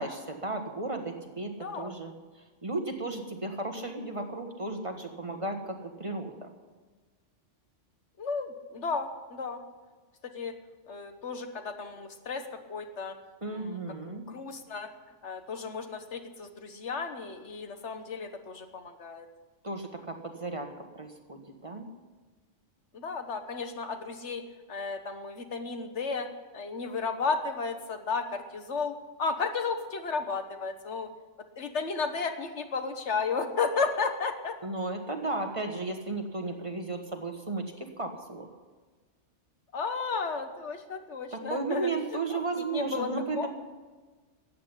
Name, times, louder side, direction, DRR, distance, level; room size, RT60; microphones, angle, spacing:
voice 1, 0.0-2.1 2.6-6.5 13.4-14.2 19.6-21.9 34.6-38.5 41.3-43.5, right 3 dB, 25° right, 4 dB, 1.4 m, -34 dB
voice 2, 1.6-1.9 8.2-9.6 10.2-10.5 10.9-13.2 13.5-14.9 15.2-19.3 22.9-26.3 26.5-31.1 31.6-34.6 39.7-42.4 42.7-43.1 43.3-43.5, left 4 dB, 70° left, 7 dB, 1.5 m, -33 dB
13.5 x 8.7 x 9.9 m, 1.4 s
omnidirectional pair, 1.3 m